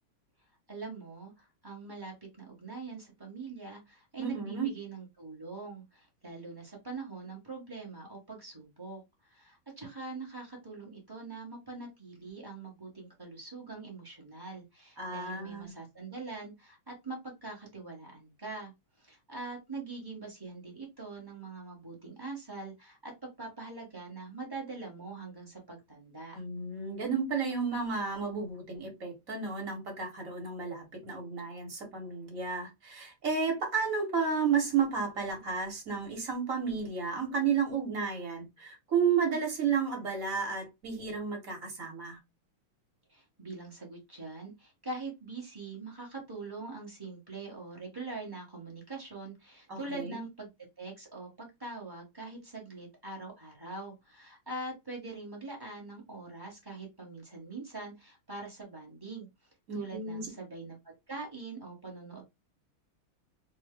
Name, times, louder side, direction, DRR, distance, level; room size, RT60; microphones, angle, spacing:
voice 1, 0.7-9.0 9.3-18.7 19.0-26.3 43.1-50.5 50.8-59.3 59.7-62.2, right 3 dB, 15° right, 1.0 m, -43 dB
voice 2, 4.2-4.7 15.0-15.7 26.3-42.2 49.7-50.2 59.7-60.3, right 6 dB, 40° right, 1.6 m, -32 dB
3.3 x 2.6 x 3.6 m
omnidirectional pair, 2.3 m